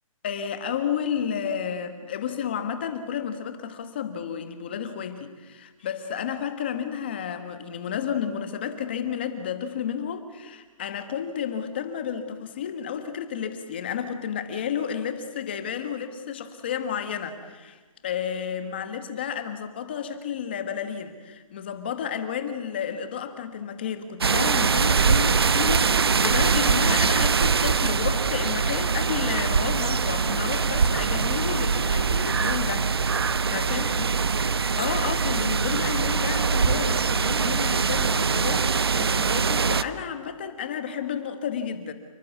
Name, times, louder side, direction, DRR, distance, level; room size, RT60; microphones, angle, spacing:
voice 1, 0.2-33.9 34.8-41.9, left 8 dB, 20° left, 9 dB, 1.3 m, -31 dB
sound 1, 24.2-39.8, right 5 dB, 45° right, 0.8 m, -23 dB
29.0 x 19.0 x 8.2 m, 1.3 s
hypercardioid pair, 180°, 18 cm